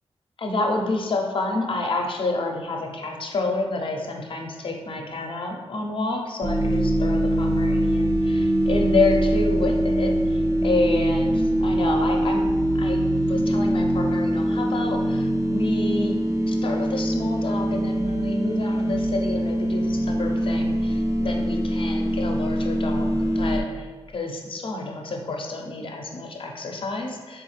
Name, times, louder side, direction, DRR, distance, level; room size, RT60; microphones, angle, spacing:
voice 1, 0.4-12.5 12.8-16.1 16.5-27.4, left 2 dB, 55° left, 2 dB, 0.6 m, -29 dB
sound 1, 6.4-23.6, equal, 30° right, 0.4 m, -23 dB
3.5 x 3.1 x 3.2 m, 1.4 s
cardioid pair, 70°, 10 cm